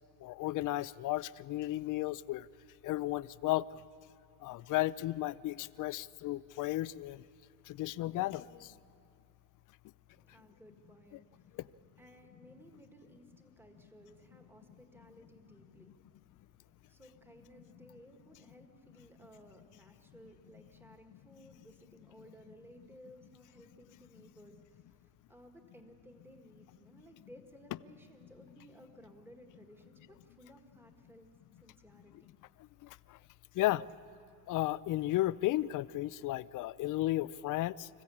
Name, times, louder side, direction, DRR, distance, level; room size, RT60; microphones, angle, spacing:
voice 1, 0.2-2.5 2.8-3.6 4.4-7.2 7.7-8.7 11.1-11.2 21.1-21.2 32.8-33.2 33.6-33.9 34.5-37.9, left 16 dB, 50° left, 19 dB, 0.5 m, -34 dB
voice 2, 10.1-16.1 16.5-31.3 31.6-32.3, equal, 5° right, 4 dB, 1.6 m, -58 dB
25.5 x 15.0 x 8.4 m, 2.6 s
cardioid pair, 140°, 42 cm